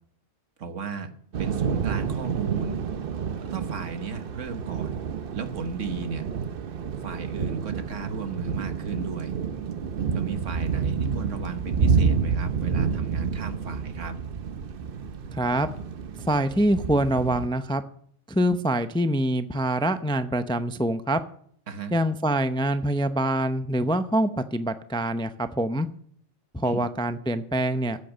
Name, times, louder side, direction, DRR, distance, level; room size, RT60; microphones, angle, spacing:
voice 1, 0.6-1.1 1.4-2.8 3.4-5.0 5.3-6.3 7.0-9.4 10.1-14.2 21.7-21.9 26.6-26.8, right 5 dB, 80° right, 8 dB, 1.6 m, -35 dB
Thunder / Rain, 1.3-17.5, right 6 dB, 55° right, 0.8 m, -29 dB
voice 2, 15.3-15.7 16.2-17.8 18.3-21.2 21.9-25.9 26.5-28.0, right 1 dB, 5° left, 10 dB, 0.4 m, -25 dB
14.0 x 8.4 x 6.5 m, 0.62 s
omnidirectional pair, 1.3 m